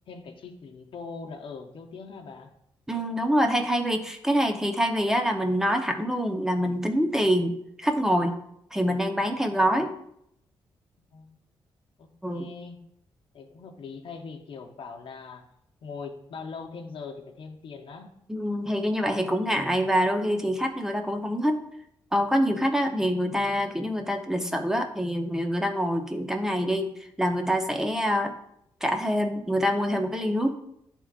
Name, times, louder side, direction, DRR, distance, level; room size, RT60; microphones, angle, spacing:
voice 1, 0.1-2.5 11.1-11.4 12.0-12.8 13.3-15.5 15.8-18.1, left 5 dB, 70° left, 3 dB, 0.9 m, -41 dB
voice 2, 2.9-8.3 8.7-9.9 12.2-12.5 18.3-21.6 22.1-26.9 27.2-28.3 28.8-30.5, equal, 5° right, 4 dB, 0.8 m, -25 dB
11.0 x 3.6 x 2.4 m, 0.76 s
cardioid pair, 90°, 9 cm